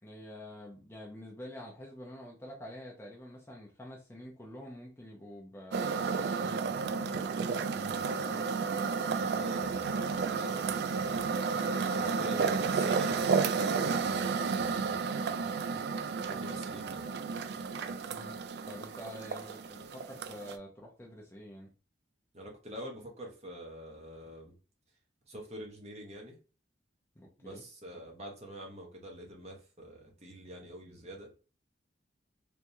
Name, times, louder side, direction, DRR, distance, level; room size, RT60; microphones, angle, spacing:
voice 1, 0.0-7.3 8.1-8.6 11.8-12.8 18.1-18.4 18.7-21.7 27.2-27.6, equal, 15° left, -1 dB, 0.5 m, -47 dB
sound 1, 5.7-20.5, right 5 dB, 60° right, 0.3 m, -32 dB
voice 2, 7.7-8.0 9.1-11.2 12.0-15.0 16.2-17.0 22.3-24.5 25.3-26.4 27.4-31.3, equal, 35° right, 0 dB, 1.0 m, -46 dB
3.4 x 3.0 x 2.7 m, 0.35 s
head